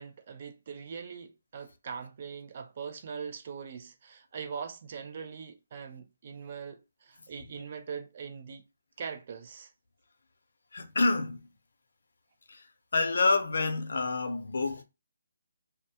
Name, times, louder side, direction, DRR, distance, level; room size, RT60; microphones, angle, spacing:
voice 1, 0.0-8.6 9.0-9.7, right 6 dB, 35° right, 0.4 m, -41 dB
voice 2, 10.7-11.4 12.5-12.7 12.9-14.8, left 3 dB, 70° left, 0.6 m, -27 dB
2.2 x 2.2 x 2.7 m
hypercardioid pair, 170°, 0 cm